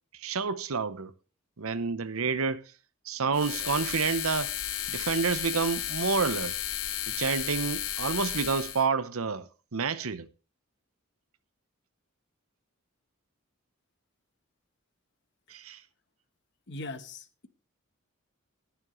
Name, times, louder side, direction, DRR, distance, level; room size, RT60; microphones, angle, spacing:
voice 1, 0.1-1.1 1.6-2.6 3.1-4.5 4.9-6.6 7.1-10.3 15.5-15.8, right 5 dB, 85° right, 0.8 m, -29 dB
sound 1, 3.3-8.8, left 12 dB, 80° left, 0.9 m, -33 dB
voice 2, 16.7-17.5, left 2 dB, 55° left, 1.0 m, -40 dB
20.0 x 7.2 x 3.1 m
head